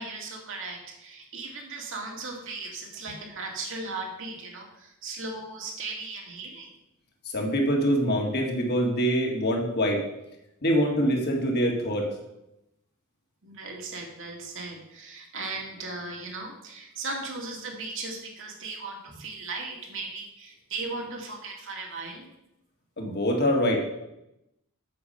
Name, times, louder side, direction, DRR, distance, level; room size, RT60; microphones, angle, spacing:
voice 1, 0.0-6.7 13.4-22.3, right 3 dB, 60° right, 1 dB, 2.1 m, -37 dB
voice 2, 7.3-10.0 10.6-12.1 23.0-23.8, equal, 50° left, 1 dB, 2.0 m, -24 dB
8.4 x 7.1 x 5.5 m, 0.88 s
head